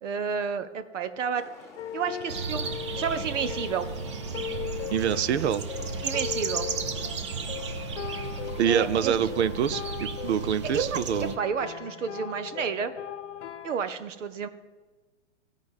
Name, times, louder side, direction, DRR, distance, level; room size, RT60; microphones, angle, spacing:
voice 1, 0.0-1.5 1.9-3.9 6.0-6.7 8.7-9.2 10.7-12.9 13.6-14.5, right 6 dB, 80° right, 10 dB, 1.2 m, -31 dB
sound 1, 1.4-10.0, left 5 dB, 5° left, 1.3 m, -50 dB
sound 2, 1.8-13.8, left 10 dB, 70° left, 0.9 m, -39 dB
sound 3, 2.3-11.4, right 5 dB, 25° right, 0.4 m, -34 dB
voice 2, 4.9-5.7 8.6-11.4, right 8 dB, 65° right, 15 dB, 0.7 m, -26 dB
15.0 x 5.2 x 8.1 m, 1.3 s
hypercardioid pair, 160°, 37 cm